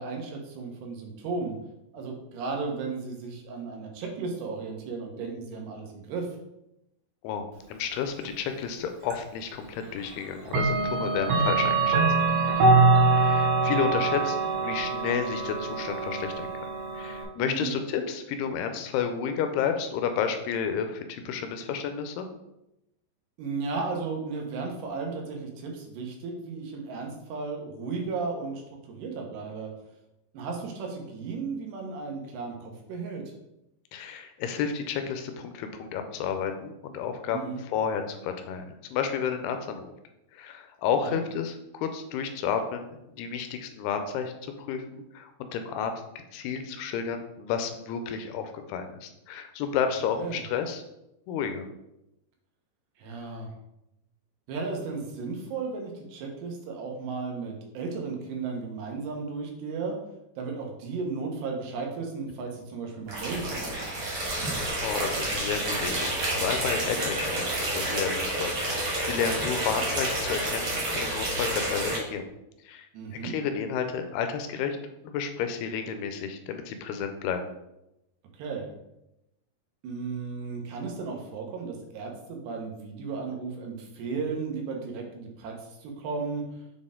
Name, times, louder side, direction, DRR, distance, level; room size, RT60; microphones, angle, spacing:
voice 1, 0.0-1.6 1.9-6.3 17.4-17.7 23.4-28.6 28.9-29.7 30.3-33.2 37.3-37.6 41.0-41.2 50.2-50.4 53.0-53.5 54.5-60.0 60.4-64.1 72.9-73.4 78.3-78.7 79.8-85.5 85.8-86.4, right 4 dB, 90° right, 1 dB, 3.2 m, -34 dB
voice 2, 7.2-12.0 13.2-16.5 16.9-22.3 33.9-39.9 40.3-42.9 43.2-45.9 46.3-50.8 51.3-51.7 64.8-72.3 72.7-72.9 73.2-74.8 75.0-77.5, left 7 dB, 85° left, 7 dB, 2.5 m, -31 dB
Clock, 9.1-9.2 10.5-17.2, right 3 dB, 75° right, 2.0 m, -24 dB
sound 1, 63.1-72.0, right 1 dB, 55° right, 1.4 m, -29 dB
7.0 x 4.2 x 3.7 m, 0.87 s
omnidirectional pair, 4.7 m